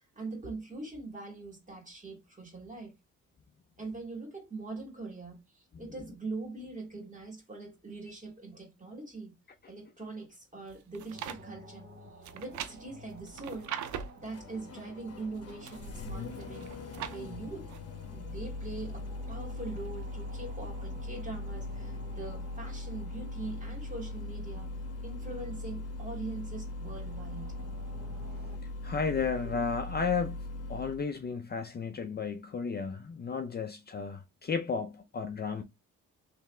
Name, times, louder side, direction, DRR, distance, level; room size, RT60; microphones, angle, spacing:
voice 1, 0.2-2.9 3.8-9.3 9.7-11.9 12.3-17.7 18.0-24.7 25.0-27.5 29.2-29.5, right 3 dB, 25° right, 2.4 m, -42 dB
sound 1, 10.7-11.4 12.2-14.2 15.2-15.9 16.4-17.2 17.7-17.8, right 9 dB, 75° right, 0.6 m, -41 dB
sound 2, 11.1-28.6, equal, 45° right, 1.7 m, -53 dB
Engine starting, 12.7-31.0, left 2 dB, 55° left, 1.1 m, -40 dB
voice 2, 28.8-35.6, left 5 dB, 35° left, 0.6 m, -33 dB
3.3 x 3.2 x 3.2 m
cardioid pair, 90°, 30 cm